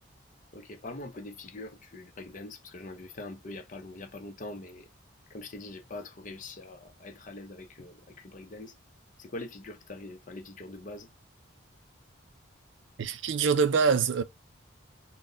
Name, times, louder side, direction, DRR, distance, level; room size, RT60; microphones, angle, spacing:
voice 1, 0.5-4.9 5.3-8.8 9.2-11.1, left 2 dB, 40° left, 0.6 m, -43 dB
voice 2, 13.0-14.2, right 5 dB, 65° right, 0.4 m, -24 dB
4.0 x 2.1 x 3.7 m
head